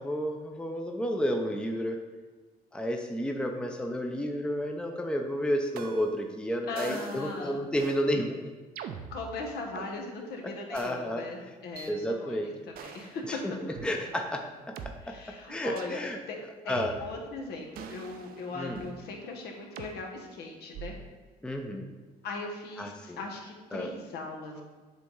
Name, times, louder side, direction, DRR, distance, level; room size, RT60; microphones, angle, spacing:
voice 1, 0.0-2.0 2.7-8.4 10.7-11.2 11.9-12.5 13.3-13.4 13.6-14.4 15.5-16.2 16.7-16.9 18.6-18.8 21.4-21.9 22.8-23.2 23.7-23.9, equal, 5° left, 3 dB, 0.6 m, -31 dB
sound 1, 5.8-6.2 6.8-7.3 7.7-8.0 8.8-9.9 10.7-10.9 11.8-11.9 12.7-13.2 13.8-13.9 14.8-14.9 15.8-16.0 16.8-17.3 17.8-19.0 19.8-19.9 20.7-21.1, right 7 dB, 60° right, 0.6 m, -43 dB
voice 2, 6.7-7.6 9.1-13.4 15.0-16.4 16.6-20.9 22.2-24.6, left 3 dB, 75° left, 1 dB, 1.3 m, -39 dB
7.9 x 3.4 x 5.5 m, 1.4 s
cardioid pair, 110°, 17 cm